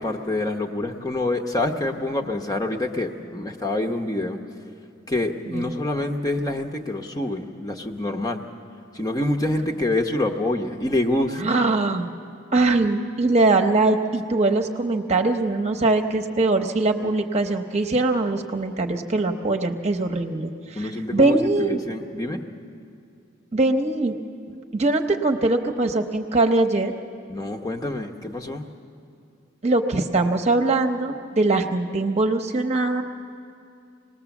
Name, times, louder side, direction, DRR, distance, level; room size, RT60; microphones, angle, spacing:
voice 1, 0.0-4.4 5.1-8.4 8.9-11.4 20.7-22.4 27.3-28.6, left 2 dB, 20° left, 3 dB, 0.9 m, -26 dB
voice 2, 11.4-12.1 12.5-21.8 23.5-24.2 24.7-26.9 29.6-33.0, right 2 dB, 35° right, 4 dB, 0.9 m, -22 dB
25.5 x 19.5 x 7.2 m, 2.5 s
head